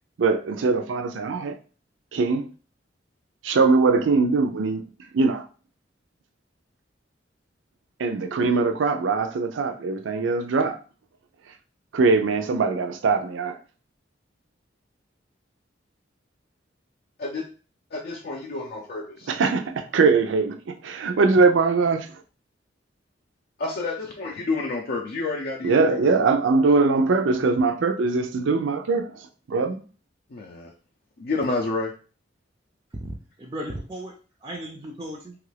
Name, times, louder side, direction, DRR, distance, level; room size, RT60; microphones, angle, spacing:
voice 1, 0.2-1.6 2.1-2.5 3.4-4.8 5.1-5.5 8.0-10.8 11.9-13.6 19.3-22.1 25.6-29.8, right 4 dB, 85° right, 0.4 m, -21 dB
voice 2, 17.9-19.3 23.6-26.2 30.3-30.7 31.2-31.9, left 3 dB, 55° left, 0.4 m, -29 dB
voice 3, 33.0-35.4, right 1 dB, 20° right, 0.4 m, -36 dB
3.0 x 2.4 x 3.2 m
head